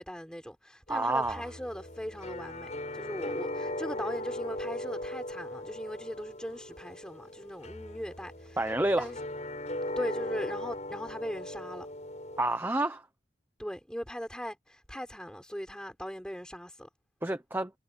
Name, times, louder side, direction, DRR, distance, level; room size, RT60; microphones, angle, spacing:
voice 1, 0.0-8.6 9.0-9.2 10.0-11.9 13.6-16.9, equal, 5° left, 5.7 m, -39 dB
sound 1, 0.9-12.4, left 1 dB, 40° left, 6.1 m, -39 dB
voice 2, 0.9-1.4 8.6-9.1 12.4-13.1 17.2-17.7, right 2 dB, 10° right, 0.9 m, -29 dB
head